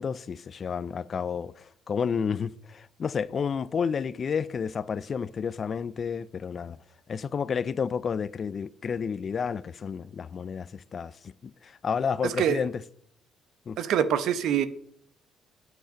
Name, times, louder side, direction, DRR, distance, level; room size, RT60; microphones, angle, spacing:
voice 1, 0.0-6.8 7.1-12.7 13.7-13.8, left 6 dB, 30° left, 0.4 m, -31 dB
voice 2, 12.2-12.6 13.8-14.7, right 9 dB, 60° right, 0.9 m, -25 dB
9.2 x 7.9 x 5.6 m
cardioid pair, 160°, 0 cm